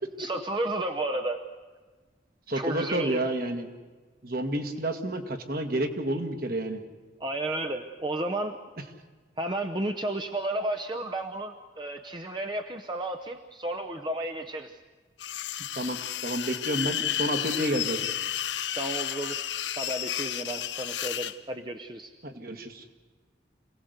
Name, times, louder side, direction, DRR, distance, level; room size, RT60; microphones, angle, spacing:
voice 1, 0.2-1.4 2.5-3.2 7.2-8.6 9.4-14.8 18.7-19.4 19.8-22.1, right 1 dB, 25° right, 5 dB, 0.8 m, -32 dB
voice 2, 2.5-3.7 4.2-6.8 15.8-18.1 22.2-22.8, right 1 dB, 55° right, 6 dB, 1.8 m, -30 dB
sound 1, 15.2-21.3, left 11 dB, 85° left, 0.9 m, -32 dB
26.5 x 17.5 x 8.2 m, 1.4 s
head